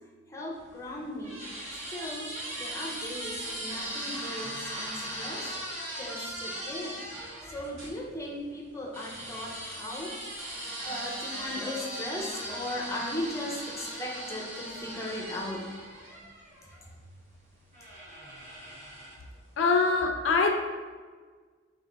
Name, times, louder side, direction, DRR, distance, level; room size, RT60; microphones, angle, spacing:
voice 1, 0.3-1.4 1.9-5.5 6.0-7.0 7.5-10.1 10.8-15.6, left 1 dB, 15° left, -2 dB, 0.6 m, -37 dB
sound 1, 0.6-8.0 8.9-16.8 17.7-19.3, right 1 dB, 35° right, 1.1 m, -39 dB
voice 2, 19.6-20.6, left 4 dB, 70° left, 4 dB, 0.4 m, -23 dB
3.3 x 2.9 x 3.8 m, 1.5 s
head